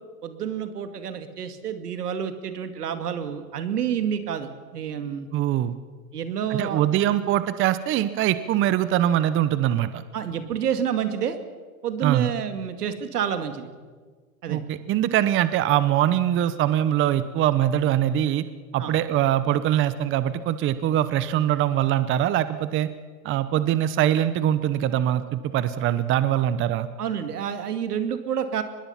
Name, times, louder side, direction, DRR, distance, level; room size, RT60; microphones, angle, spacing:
voice 1, 0.2-5.3 6.1-6.9 10.1-11.4 11.8-13.7 14.4-14.7 18.8-19.0 26.3-26.4 27.0-28.6, right 8 dB, 80° right, 8 dB, 2.3 m, -29 dB
voice 2, 5.3-5.7 6.5-10.0 12.0-12.3 14.5-18.4 18.7-22.9 23.2-26.9, right 11 dB, 25° right, 13 dB, 0.9 m, -23 dB
24.0 x 21.0 x 5.8 m, 1.5 s
hypercardioid pair, 115°, 45 cm